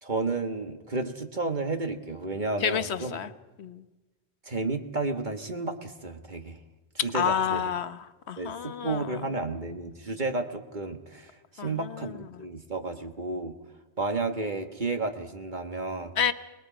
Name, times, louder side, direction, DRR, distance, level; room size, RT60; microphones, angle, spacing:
voice 1, 0.0-3.2 4.5-6.6 7.0-7.6 8.4-13.5 14.0-16.1, right 3 dB, 40° right, 6 dB, 1.5 m, -32 dB
voice 2, 2.6-3.3 3.6-3.8 7.1-9.2 11.6-12.4 16.2-16.3, left 8 dB, 65° left, 11 dB, 1.2 m, -30 dB
29.0 x 20.0 x 5.1 m, 1.2 s
omnidirectional pair, 1.2 m